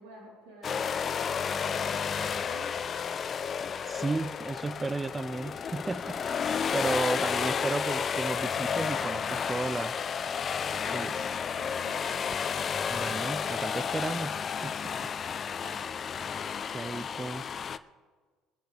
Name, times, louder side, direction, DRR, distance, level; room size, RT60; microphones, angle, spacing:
voice 1, 0.0-2.8 10.6-12.7 15.6-16.0, right 1 dB, 85° right, 3.9 m, -49 dB
sound 1, 0.6-17.8, left 7 dB, 40° left, 0.6 m, -32 dB
voice 2, 3.9-6.4 6.7-10.0 10.9-11.2 12.9-15.1 16.7-17.4, right 3 dB, 20° right, 0.4 m, -34 dB
23.0 x 10.0 x 3.5 m
supercardioid pair, 85°, 0 cm